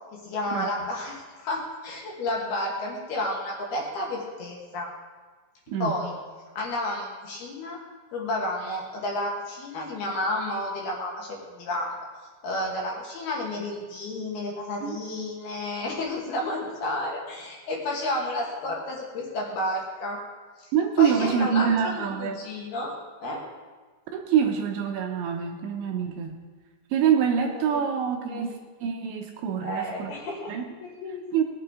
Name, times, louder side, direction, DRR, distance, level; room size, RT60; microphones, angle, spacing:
voice 1, 0.1-4.9 5.8-6.1 6.5-7.8 8.1-12.0 12.4-20.2 20.6-20.7 21.0-22.9 23.2-23.4 27.7-27.8 28.2-28.5 29.6-31.4, left 1 dB, 60° left, -1 dB, 3.0 m, -31 dB
voice 2, 5.7-6.0 14.8-15.0 20.7-22.4 24.1-26.4 26.9-30.1 30.5-30.7 31.3-31.4, right 8 dB, 75° right, 2 dB, 2.9 m, -25 dB
20.0 x 8.8 x 4.9 m, 1.4 s
omnidirectional pair, 5.9 m